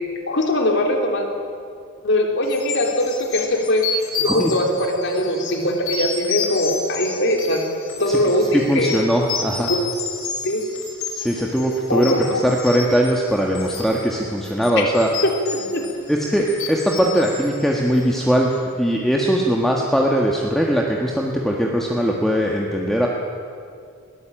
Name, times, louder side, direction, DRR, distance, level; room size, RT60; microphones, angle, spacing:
voice 1, 0.3-1.3 2.0-7.6 8.0-9.1 9.7-10.0 10.4-10.6 11.9-12.5 14.8-14.9 15.2-15.9, left 1 dB, 55° left, 2 dB, 3.5 m, -21 dB
sound 1, 2.5-18.3, left 5 dB, 85° left, 5.1 m, -31 dB
voice 2, 8.5-9.7 11.1-12.1 12.4-15.1 16.1-23.1, equal, ahead, -1 dB, 1.5 m, -20 dB
21.0 x 18.0 x 8.9 m, 2.3 s
head